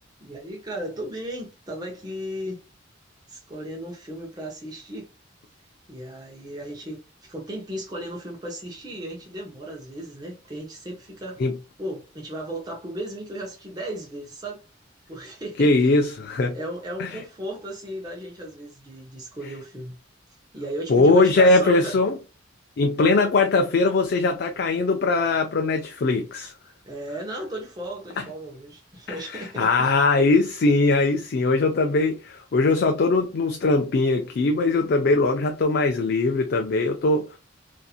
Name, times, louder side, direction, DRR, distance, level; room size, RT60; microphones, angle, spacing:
voice 1, 0.2-2.6 3.3-5.1 5.9-11.4 11.8-14.6 15.1-15.7 16.5-20.0 20.5-22.0 26.8-29.9, right 1 dB, 20° right, 0.7 m, -35 dB
voice 2, 15.6-16.6 17.0-17.1 20.9-22.2 22.8-26.5 29.1-37.4, left 3 dB, 55° left, 0.4 m, -21 dB
2.8 x 2.5 x 2.3 m
head